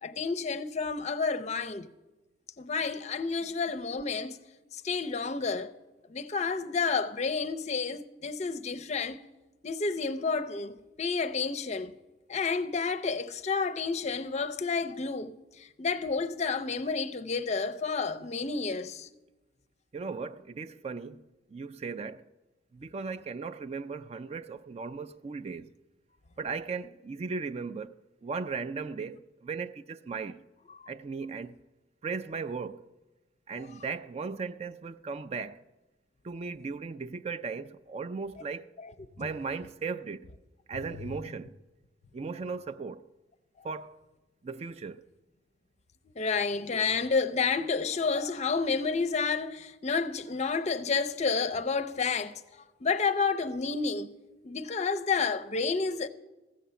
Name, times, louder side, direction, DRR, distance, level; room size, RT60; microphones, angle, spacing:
voice 1, 0.0-1.9 2.6-4.4 4.8-5.7 6.1-9.2 9.6-12.0 12.3-19.1 30.8-30.9 38.8-38.9 39.2-39.3 46.2-52.4 52.8-54.1 54.4-56.1, left 4 dB, 40° left, 0.5 m, -30 dB
voice 2, 19.9-21.2 21.5-22.3 22.7-25.7 26.4-27.9 28.2-30.4 30.9-31.6 32.0-32.8 33.5-35.6 36.2-38.7 39.2-40.3 40.7-41.6 42.1-43.0 43.6-44.0 44.4-45.0, right 4 dB, 35° right, 0.4 m, -37 dB
15.0 x 7.3 x 6.9 m
head